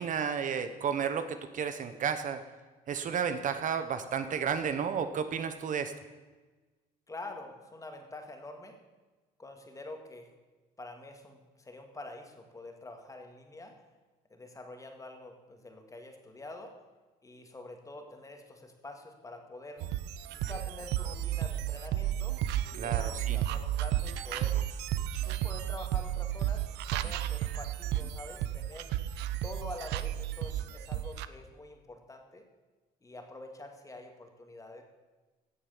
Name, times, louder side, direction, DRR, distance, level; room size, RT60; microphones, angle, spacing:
voice 1, 0.0-2.4 2.9-5.9 22.7-23.4, right 7 dB, 50° right, 10 dB, 1.0 m, -32 dB
voice 2, 7.1-8.8 9.4-10.3 10.8-13.8 14.3-16.8 17.2-19.9 20.3-22.4 22.7-24.6 25.2-28.9 29.4-32.5 33.0-34.8, left 2 dB, 20° left, 4 dB, 2.2 m, -46 dB
sound 1, 19.8-31.3, right 12 dB, 85° right, 0.6 m, -33 dB
16.5 x 6.9 x 7.2 m, 1.3 s
cardioid pair, 110°, 17 cm